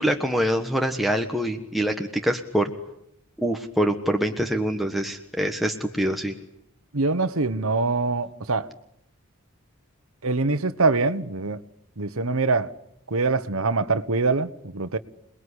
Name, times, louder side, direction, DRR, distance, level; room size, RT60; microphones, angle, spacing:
voice 1, 0.0-2.7 3.4-6.3, equal, ahead, 1.4 m, -25 dB
voice 2, 6.9-8.7 10.2-11.6 12.0-12.7 13.1-15.0, right 3 dB, 75° right, 1.3 m, -24 dB
28.0 x 21.0 x 9.9 m
head